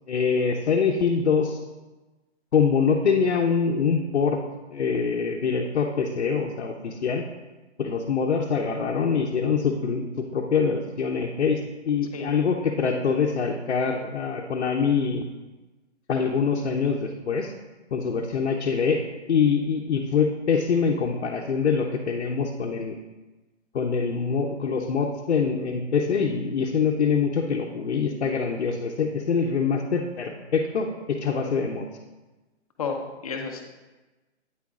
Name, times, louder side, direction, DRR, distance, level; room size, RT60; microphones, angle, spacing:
voice 1, 0.1-1.6 2.5-4.4 4.7-7.2 7.8-11.6 11.9-15.3 16.1-17.5 17.9-19.0 19.3-23.0 23.7-31.9, left 5 dB, 65° left, -1 dB, 0.8 m, -24 dB
voice 2, 32.8-33.6, left 5 dB, 30° left, 3 dB, 0.8 m, -32 dB
9.0 x 8.5 x 2.4 m, 1.1 s
hypercardioid pair, 160°, 35 cm